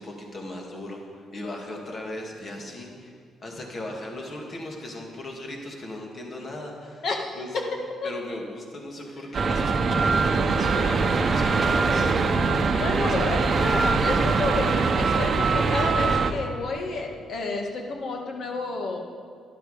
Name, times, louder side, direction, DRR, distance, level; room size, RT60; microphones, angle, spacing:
voice 1, 0.0-3.1 3.4-7.1 7.3-7.5 8.0-12.1 13.0-13.2, left 1 dB, 40° left, 0 dB, 2.4 m, -37 dB
voice 2, 7.0-7.4 8.0-8.1 12.8-19.0, left 3 dB, 60° left, 2 dB, 1.8 m, -30 dB
sound 1, 9.3-16.3, right 4 dB, 45° right, 0.8 m, -22 dB
12.0 x 11.0 x 5.1 m, 2.1 s
cardioid pair, 90°, 0 cm